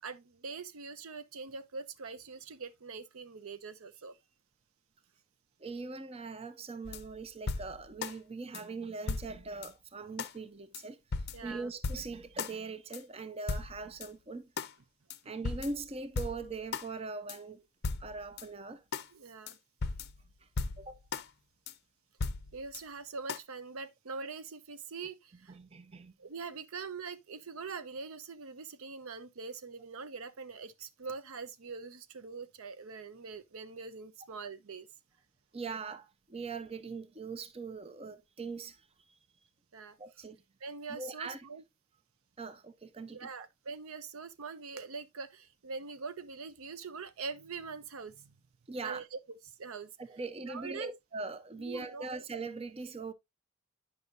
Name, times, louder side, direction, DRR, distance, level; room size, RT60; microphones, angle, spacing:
voice 1, 0.0-4.2 11.3-11.7 19.1-19.6 22.5-25.6 26.2-34.9 39.7-40.0 40.6-41.6 43.1-48.4 48.8-49.2 49.5-49.9 50.5-50.9 51.6-52.2, right 4 dB, 75° right, 0.6 m, -43 dB
voice 2, 5.6-11.0 11.4-14.5 15.2-17.6 18.0-18.8 20.4-20.5 20.8-21.0 25.5-26.1 35.5-39.2 40.0-40.4 40.9-41.5 42.4-43.3 48.7-49.0 50.0-53.1, right 3 dB, 25° right, 0.5 m, -41 dB
sound 1, 6.8-8.1 8.5-8.6 9.1-9.7 10.2-10.3 10.7-10.8 11.1-12.6 12.9-13.0 13.5-14.1 14.6-14.7 15.1-15.2 15.4-16.9 17.3-17.4 17.8-18.5 18.9-19.1 19.5-19.6 19.8-21.3 21.7-21.8 22.2-22.8 23.3-23.4, left 4 dB, 50° left, 0.5 m, -37 dB
9.5 x 5.5 x 2.5 m
head